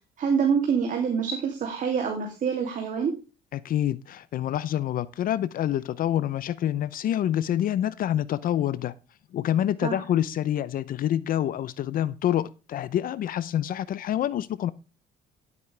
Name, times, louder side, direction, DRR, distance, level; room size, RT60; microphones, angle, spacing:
voice 1, 0.2-3.1 9.8-10.0, right 6 dB, 50° right, 2.7 m, -26 dB
voice 2, 3.5-8.9 9.3-14.7, left 11 dB, 55° left, 0.7 m, -27 dB
12.0 x 8.2 x 3.3 m
cardioid pair, 110°, 17 cm